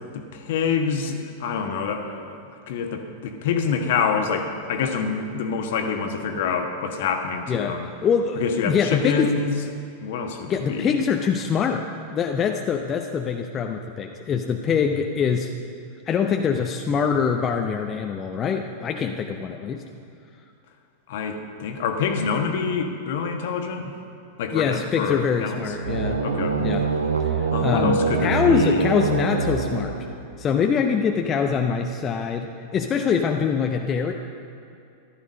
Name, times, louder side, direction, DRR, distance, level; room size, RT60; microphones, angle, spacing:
voice 1, 0.1-2.4 2.7-7.9 8.4-9.6 10.0-11.0 21.1-23.9 24.4-25.6 26.2-26.6 27.5-28.9, left 5 dB, 55° left, 5 dB, 1.4 m, -26 dB
voice 2, 7.5-9.3 10.5-11.8 12.1-15.5 16.1-19.8 24.5-26.2 26.6-26.9 27.2-30.0 30.4-34.1, left 6 dB, 25° left, 3 dB, 0.7 m, -24 dB
sound 1, 25.7-30.4, right 5 dB, 75° right, 0.9 m, -25 dB
14.5 x 12.5 x 5.4 m, 2.6 s
figure-of-eight pair, 90°, 0 cm